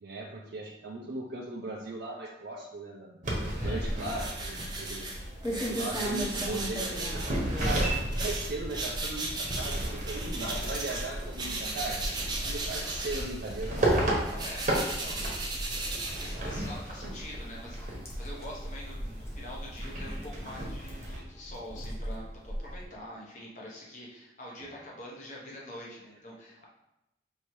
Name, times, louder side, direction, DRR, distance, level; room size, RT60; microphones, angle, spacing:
voice 1, 0.0-5.1 5.7-7.1 7.6-7.9 8.2-12.1 12.4-14.0, right 2 dB, 65° right, -2 dB, 0.5 m, -38 dB
sound 1, 3.2-21.2, right 1 dB, 45° right, 0.9 m, -34 dB
voice 2, 3.6-3.9 14.1-15.2 15.5-26.7, left 1 dB, 40° left, -4 dB, 0.9 m, -45 dB
sound 2, 3.7-22.8, equal, 15° left, 0.8 m, -41 dB
sound 3, 4.0-11.1 11.3-16.8, right 2 dB, 25° right, 0.7 m, -37 dB
5.3 x 2.8 x 3.1 m, 0.90 s
head